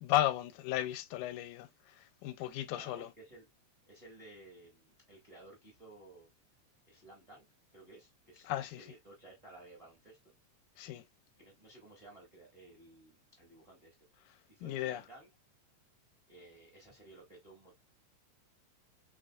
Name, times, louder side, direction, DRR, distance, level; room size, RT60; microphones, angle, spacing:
voice 1, 0.0-1.7 2.2-3.1 8.5-8.8 10.8-11.0 14.6-15.0, left 13 dB, 85° left, 2.0 m, -34 dB
voice 2, 2.6-3.5 3.9-6.3 6.9-7.4 7.7-10.3 11.4-13.9 14.4-15.3 16.3-17.7, right 2 dB, 15° right, 1.2 m, -56 dB
4.0 x 3.9 x 2.4 m
omnidirectional pair, 3.4 m